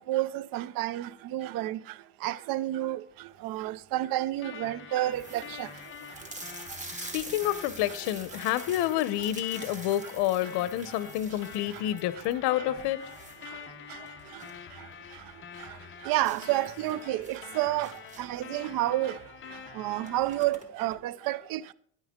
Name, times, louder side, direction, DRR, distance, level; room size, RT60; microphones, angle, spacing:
voice 1, 0.0-1.8 2.2-3.0 3.4-5.7 16.1-17.9 18.2-19.2 19.8-21.7, right 15 dB, 55° right, 0.5 m, -30 dB
sound 1, 3.3-3.8 4.4-4.5 4.7-4.8 5.1-14.7 15.0-15.1 15.5-15.6 16.2-18.5 19.4-19.6 19.8-21.0, right 2 dB, 15° right, 1.3 m, -46 dB
sound 2, 4.4-20.4, left 7 dB, 30° left, 0.9 m, -46 dB
voice 2, 7.0-13.0, left 13 dB, 75° left, 0.8 m, -29 dB
9.9 x 9.8 x 3.6 m
cardioid pair, 140°, 41 cm